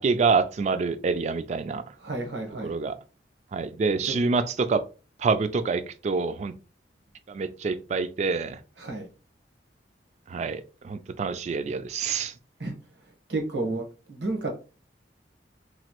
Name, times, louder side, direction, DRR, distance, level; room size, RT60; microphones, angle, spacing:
voice 1, 0.0-1.8 2.6-3.0 3.5-4.8 5.2-6.5 7.3-8.6 10.3-12.3, right 4 dB, 40° right, 0.3 m, -26 dB
voice 2, 2.0-2.8 4.0-4.2 8.8-9.1 12.6-12.7 13.3-14.5, right 2 dB, 85° right, 1.1 m, -31 dB
3.0 x 2.5 x 2.9 m
head